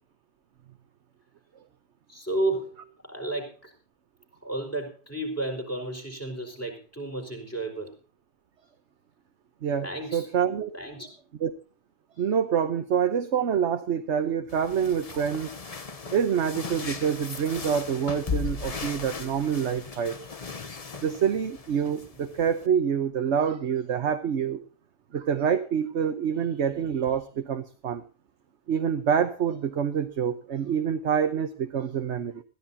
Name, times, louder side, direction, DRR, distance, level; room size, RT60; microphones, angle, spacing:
voice 1, 2.1-3.7 4.4-7.9 9.8-10.3 10.7-11.1, right 2 dB, 10° left, 3 dB, 4.9 m, -32 dB
voice 2, 9.6-10.8 11.4-11.5 12.2-15.5 16.1-20.3 21.0-24.6 25.1-28.0 28.7-32.4, right 7 dB, 55° right, 7 dB, 1.2 m, -26 dB
sound 1, 14.5-22.7, left 4 dB, 30° left, 0.9 m, -37 dB
21.0 x 14.0 x 2.8 m, 0.37 s
omnidirectional pair, 1.5 m